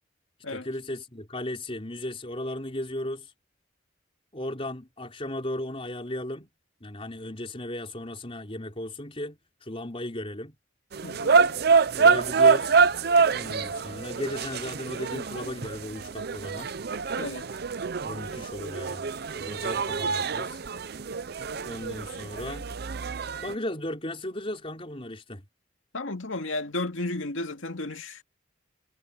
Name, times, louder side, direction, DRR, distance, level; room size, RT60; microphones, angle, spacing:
voice 1, 0.5-3.3 4.3-6.5 6.8-10.5 12.0-12.7 13.3-16.7 18.0-19.1 19.4-20.6 21.6-22.6 23.4-25.4, left 1 dB, 30° left, 4.6 m, -36 dB
sound 1, 10.9-23.5, right 5 dB, 55° right, 0.6 m, -26 dB
voice 2, 11.0-11.4 17.2-17.5 25.9-28.2, left 2 dB, 90° left, 2.2 m, -33 dB
head